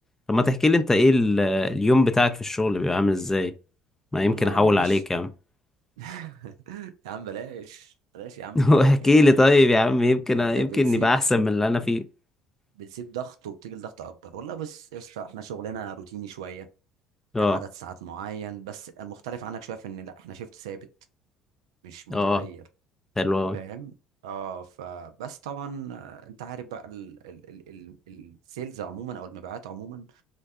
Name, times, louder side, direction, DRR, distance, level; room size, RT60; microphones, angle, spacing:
voice 1, 0.3-3.5 4.1-5.3 8.5-12.1 17.3-17.6 22.1-22.4 23.2-23.6, left 2 dB, 15° left, 0.4 m, -20 dB
voice 2, 4.2-5.0 6.0-9.3 10.3-11.1 12.8-16.7 17.4-20.9 21.8-22.6 23.5-23.9 24.2-30.2, right 8 dB, 75° right, 0.3 m, -38 dB
2.5 x 2.1 x 2.3 m
hypercardioid pair, 60°, 3 cm